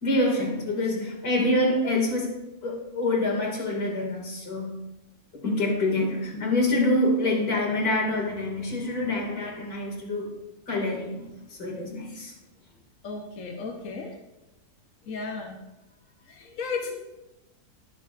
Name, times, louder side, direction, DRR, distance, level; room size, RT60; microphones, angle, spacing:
voice 1, 0.0-2.4 2.6-4.7 5.4-10.3 10.7-11.3 11.6-12.3, left 1 dB, 80° left, -1 dB, 2.9 m, -26 dB
voice 2, 13.0-14.1 15.1-15.6 16.4-16.9, left 4 dB, 60° left, 2 dB, 1.3 m, -34 dB
20.0 x 7.1 x 2.5 m, 0.97 s
omnidirectional pair, 1.6 m